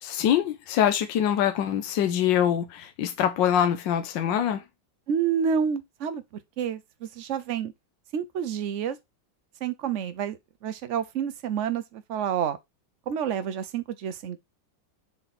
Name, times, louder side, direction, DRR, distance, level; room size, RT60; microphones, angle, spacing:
voice 1, 0.0-4.6, left 10 dB, 80° left, 1.5 m, -24 dB
voice 2, 5.1-6.2 6.6-7.7 8.1-9.0 9.6-10.4 10.6-12.6 13.1-14.4, right 8 dB, 60° right, 0.8 m, -29 dB
6.9 x 3.6 x 4.2 m
omnidirectional pair, 2.0 m